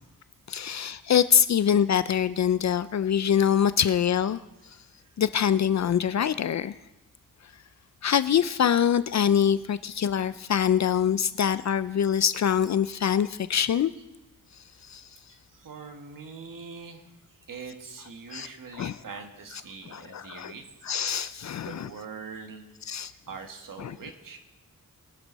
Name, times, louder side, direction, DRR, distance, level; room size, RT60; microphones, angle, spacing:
voice 1, 0.5-4.4 5.2-6.7 8.0-13.9 14.9-15.1 18.3-18.5 18.7-19.0 19.9-20.5 20.8-21.9 22.9-23.1 23.8-24.0, left 8 dB, 55° left, 14 dB, 0.4 m, -24 dB
voice 2, 15.3-17.0 17.5-20.6 21.6-22.7 23.3-24.4, right 5 dB, 80° right, 4 dB, 1.9 m, -43 dB
22.0 x 11.5 x 4.1 m, 0.98 s
wide cardioid pair, 180°, 33 cm